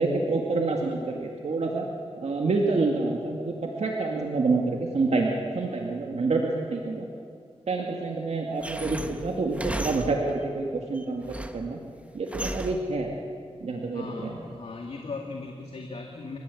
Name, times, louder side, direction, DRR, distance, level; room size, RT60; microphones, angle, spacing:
voice 1, 0.0-1.9 2.2-7.1 7.7-11.8 12.1-13.1 13.6-14.3, right 3 dB, 70° right, 0 dB, 2.2 m, -27 dB
sound 1, 8.6-10.4 10.9-11.7 12.3-13.0, right 1 dB, 10° right, 1.3 m, -35 dB
voice 2, 13.9-16.4, left 3 dB, 65° left, 1 dB, 2.3 m, -38 dB
28.5 x 15.0 x 8.4 m, 2.3 s
wide cardioid pair, 70°, 12 cm